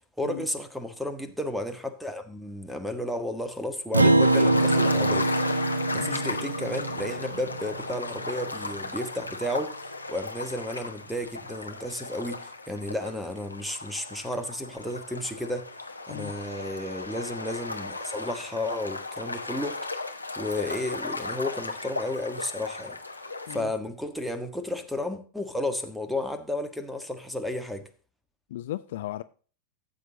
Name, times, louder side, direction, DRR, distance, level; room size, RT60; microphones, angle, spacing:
voice 1, 0.2-5.3 5.9-9.8 10.1-15.7 16.1-19.8 20.4-23.0 23.5-27.9, left 1 dB, ahead, 1.5 m, -33 dB
Acoustic guitar, 3.9-8.6, right 2 dB, 80° right, 0.8 m, -24 dB
sound 1, 4.2-23.6, left 3 dB, 85° left, 1.1 m, -35 dB
voice 2, 28.5-29.2, left 14 dB, 55° left, 0.5 m, -36 dB
13.5 x 7.8 x 3.8 m
figure-of-eight pair, 90°, 0 cm